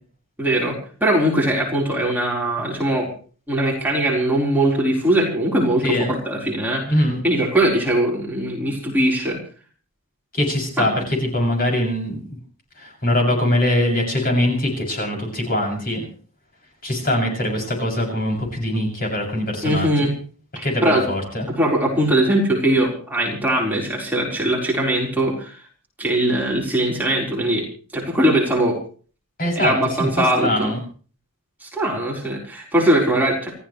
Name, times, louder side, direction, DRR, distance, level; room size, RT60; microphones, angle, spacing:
voice 1, 0.4-3.1 3.5-9.4 10.8-10.9 19.6-20.1 20.6-21.0 21.5-25.5 26.0-27.7 27.9-28.8 29.6-30.7 31.6-33.6, right 1 dB, 10° right, -3 dB, 4.5 m, -21 dB
voice 2, 5.8-6.1 6.9-7.2 10.3-12.4 12.8-16.0 16.8-20.1 20.6-21.5 29.4-30.8, left 1 dB, 40° left, 0 dB, 7.2 m, -22 dB
29.0 x 14.0 x 3.3 m, 0.41 s
head